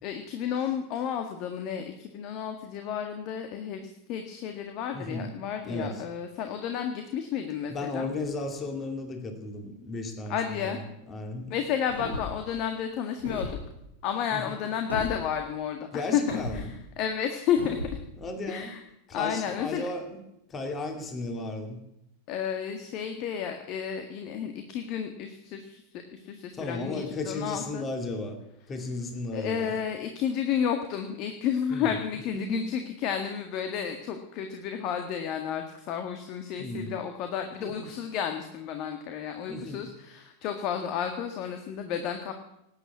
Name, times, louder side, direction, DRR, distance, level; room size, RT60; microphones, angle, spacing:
voice 1, 0.0-8.1 10.3-10.8 11.5-13.6 14.0-17.9 18.5-18.8 19.1-19.9 22.3-27.8 29.3-42.3, left 8 dB, 40° left, 6 dB, 1.7 m, -32 dB
voice 2, 4.9-5.3 5.6-6.0 7.7-10.8 11.1-11.5 14.3-14.6 15.9-16.7 18.2-18.7 19.1-20.2 20.5-21.8 26.5-28.4 28.7-29.7 31.7-31.9 32.3-32.6 36.6-36.9 37.6-37.9 39.5-39.9, left 2 dB, 20° left, 5 dB, 2.6 m, -34 dB
sound 1, 11.9-12.4 13.2-13.6 14.9-15.1 16.3-16.6 17.6-18.0, left 2 dB, 85° left, 4.8 m, -34 dB
19.0 x 9.1 x 8.3 m, 0.83 s
figure-of-eight pair, 90°, 0 cm